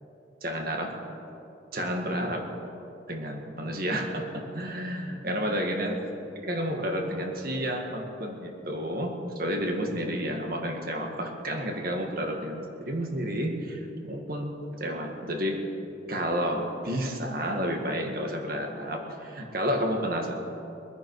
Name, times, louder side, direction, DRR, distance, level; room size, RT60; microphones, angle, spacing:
voice 1, 0.4-1.0 1.7-2.5 3.1-6.0 6.4-15.6 16.1-20.3, equal, 50° right, 2 dB, 1.9 m, -31 dB
22.5 x 10.5 x 4.9 m, 2.8 s
head